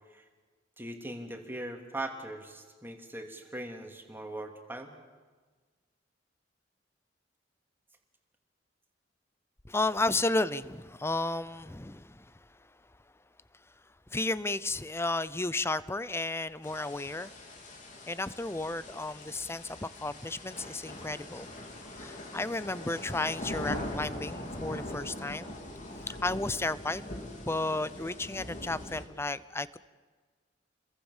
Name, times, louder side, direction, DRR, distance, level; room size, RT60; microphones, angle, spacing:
voice 1, 0.8-4.9, right 1 dB, 10° right, 3 dB, 3.0 m, -40 dB
voice 2, 9.7-12.3 14.1-17.3 18.1-21.5 21.9-25.6 26.1-27.1 27.5-29.8, left 2 dB, 15° left, 16 dB, 0.7 m, -33 dB
sound 1, 16.6-29.0, left 1 dB, 45° left, 3.8 m, -42 dB
29.5 x 22.5 x 7.3 m, 1.4 s
head